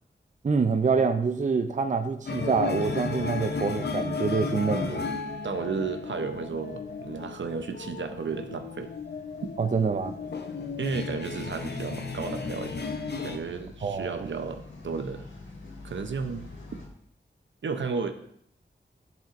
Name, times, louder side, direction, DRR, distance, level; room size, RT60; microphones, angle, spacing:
voice 1, 0.4-5.1 9.6-10.1 13.8-14.3, right 5 dB, 40° right, 8 dB, 0.5 m, -26 dB
sound 1, 2.3-13.4, left 4 dB, 65° left, 0.7 m, -34 dB
sound 2, 2.4-16.9, left 2 dB, 85° left, 1.4 m, -50 dB
voice 2, 5.4-8.9 10.8-12.9 13.2-15.2 15.8-16.5 17.6-18.1, right 5 dB, 80° right, 7 dB, 0.7 m, -33 dB
10.5 x 5.8 x 2.5 m, 0.69 s
wide cardioid pair, 85°, 19 cm